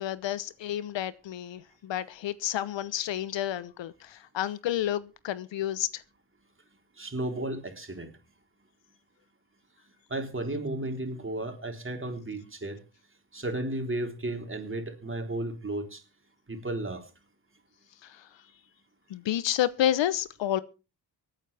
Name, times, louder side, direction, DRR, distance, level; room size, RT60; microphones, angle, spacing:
voice 1, 0.0-6.0 18.0-18.4 19.1-20.6, left 12 dB, 70° left, 0.9 m, -30 dB
voice 2, 7.0-8.1 10.1-12.8 13.3-16.0 16.5-17.0, right 1 dB, 25° right, 3.8 m, -33 dB
24.5 x 9.1 x 3.4 m
supercardioid pair, 50°, 45 cm